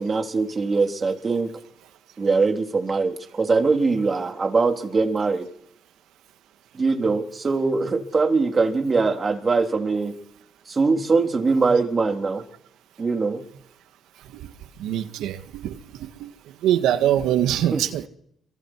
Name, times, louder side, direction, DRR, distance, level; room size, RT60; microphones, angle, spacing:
voice 1, 0.0-1.5 2.2-5.5 6.7-10.1 10.7-12.4 13.0-13.4 17.7-17.8, right 4 dB, 35° right, 3.6 m, -22 dB
voice 2, 14.8-15.4 15.6-15.8 16.6-18.1, right 11 dB, 90° right, 1.8 m, -22 dB
27.5 x 24.0 x 4.8 m
cardioid pair, 90°, 0 cm